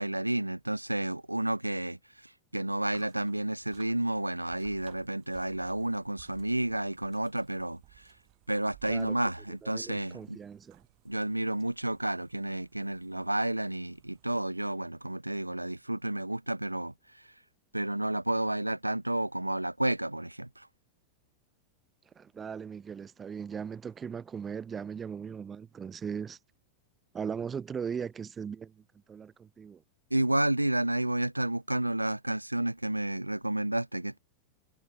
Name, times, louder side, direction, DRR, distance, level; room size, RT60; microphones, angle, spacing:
voice 1, 0.0-8.1 8.5-10.4 11.0-16.9 17.7-20.7 30.1-34.2, right 1 dB, 85° right, 1.1 m, -31 dB
sound 1, 2.8-14.5, right 36 dB, 45° right, 4.9 m, -60 dB
voice 2, 9.6-10.8 22.1-26.4 27.1-29.8, right 7 dB, 20° right, 2.6 m, -39 dB
figure-of-eight pair, 90°, 0 cm